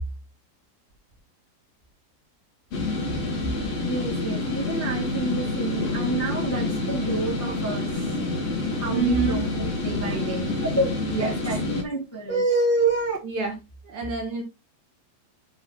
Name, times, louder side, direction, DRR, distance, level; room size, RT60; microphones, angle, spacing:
sound 1, 2.7-11.8, left 2 dB, 60° left, 1.7 m, -28 dB
voice 1, 3.8-8.1 8.8-13.2, right 2 dB, 5° left, 1.2 m, -28 dB
voice 2, 8.9-9.4 11.1-11.4 13.2-13.6 13.8-14.4, right 4 dB, 50° right, 2.6 m, -26 dB
10.0 x 4.0 x 4.6 m
omnidirectional pair, 5.2 m